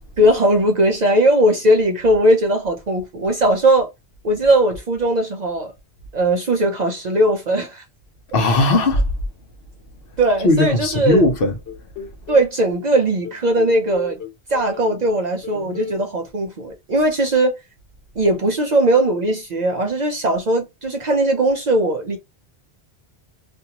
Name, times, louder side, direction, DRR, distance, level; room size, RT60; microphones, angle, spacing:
voice 1, 0.2-3.9 4.2-5.7 6.1-7.8 10.2-11.2 12.3-14.2 14.5-17.5 18.2-22.2, right 1 dB, 50° right, 0.5 m, -18 dB
voice 2, 8.3-9.0 10.4-11.5, left 2 dB, 60° left, 0.8 m, -17 dB
sound 1, 11.7-12.5 12.9-15.1 15.4-16.0, left 7 dB, 90° left, 1.1 m, -35 dB
2.6 x 2.3 x 2.8 m
omnidirectional pair, 1.1 m